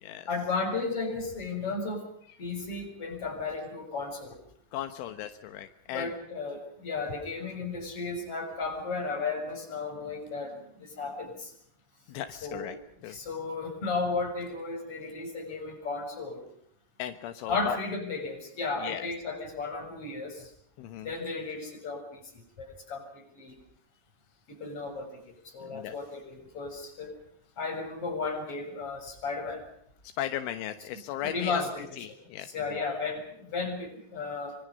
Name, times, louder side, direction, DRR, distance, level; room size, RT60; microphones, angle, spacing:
voice 1, 0.3-2.0 2.4-4.4 5.9-11.5 12.4-12.7 13.1-16.5 17.5-20.5 21.0-23.5 24.5-27.1 27.6-29.6 31.2-31.9 32.5-34.6, left 4 dB, 30° left, 3 dB, 7.3 m, -34 dB
voice 2, 4.7-6.1 12.1-12.8 13.0-13.2 17.0-17.8 18.8-19.1 20.8-21.1 25.6-26.0 30.2-32.8, left 11 dB, 80° left, 9 dB, 3.6 m, -37 dB
25.5 x 25.5 x 5.3 m, 0.67 s
omnidirectional pair, 5.5 m